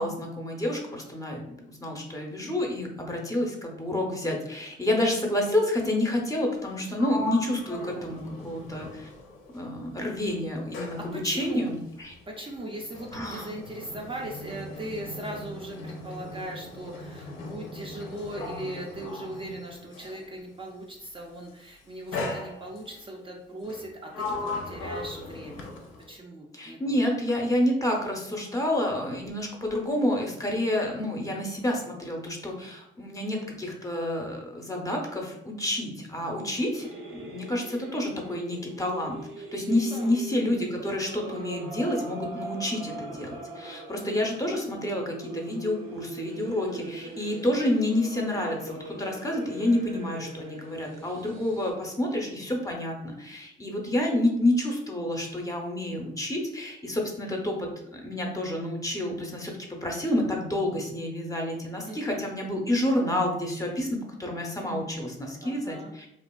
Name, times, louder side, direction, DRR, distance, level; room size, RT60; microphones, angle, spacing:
voice 1, 0.0-9.1 9.5-12.1 13.1-13.5 26.5-66.1, left 1 dB, 15° left, 0 dB, 0.6 m, -29 dB
Sliding door, 6.5-9.8 10.1-20.3 21.2-21.5 22.1-23.0 23.6-26.2, left 2 dB, 85° left, 0.5 m, -38 dB
voice 2, 11.0-11.7 12.3-25.7 26.1-27.1 36.4-37.1 39.7-40.2 41.1-41.8 61.9-62.0 65.4-65.9, right 1 dB, 25° right, 0 dB, 0.4 m, -39 dB
sound 1, 36.7-51.7, right 2 dB, 85° right, 0.6 m, -41 dB
2.8 x 2.5 x 2.2 m, 0.81 s
cardioid pair, 90°, 20 cm